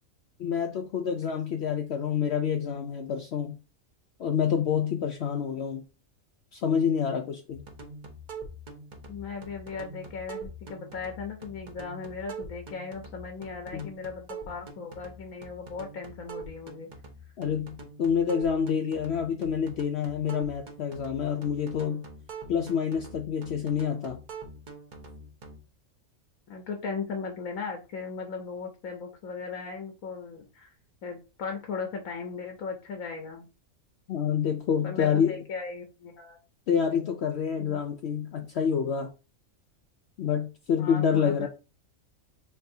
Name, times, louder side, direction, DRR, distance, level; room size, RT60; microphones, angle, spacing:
voice 1, 0.4-3.6 4.2-5.8 6.5-7.6 13.7-13.9 17.4-22.0 22.5-24.2 34.1-35.4 36.7-39.1 40.2-41.5, left 7 dB, 65° left, 0.7 m, -27 dB
sound 1, 7.5-25.6, right 3 dB, 40° right, 0.9 m, -44 dB
voice 2, 9.1-16.9 26.5-30.7 31.0-33.5 34.8-36.4 37.6-37.8 40.8-41.5, left 5 dB, 90° left, 1.2 m, -37 dB
5.7 x 3.5 x 2.7 m
omnidirectional pair, 1.4 m